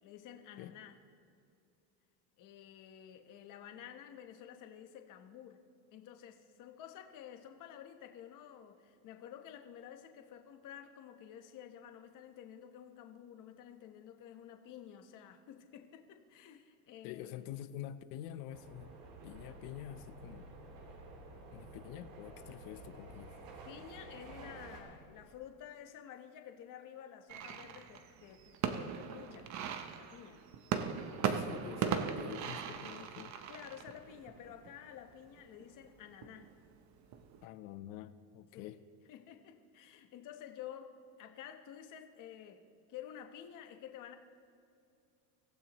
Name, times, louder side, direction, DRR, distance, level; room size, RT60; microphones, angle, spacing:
voice 1, 0.0-1.0 2.4-5.6 5.9-17.6 23.6-29.6 29.9-30.5 31.3-31.6 33.5-36.6 38.5-38.8 39.1-44.2, left 9 dB, 40° left, 6 dB, 1.1 m, -51 dB
voice 2, 17.0-18.9 19.2-20.5 21.5-23.3 31.2-33.3 37.4-38.8, left 12 dB, 65° left, 12 dB, 0.9 m, -47 dB
sound 1, 18.5-24.8, right 3 dB, 75° right, 3.7 m, -52 dB
sound 2, 19.3-25.2, left 4 dB, 15° left, 2.2 m, -60 dB
sound 3, 27.3-37.4, right 7 dB, 35° right, 0.8 m, -39 dB
25.0 x 15.5 x 3.1 m, 2.5 s
cardioid pair, 165°, 49 cm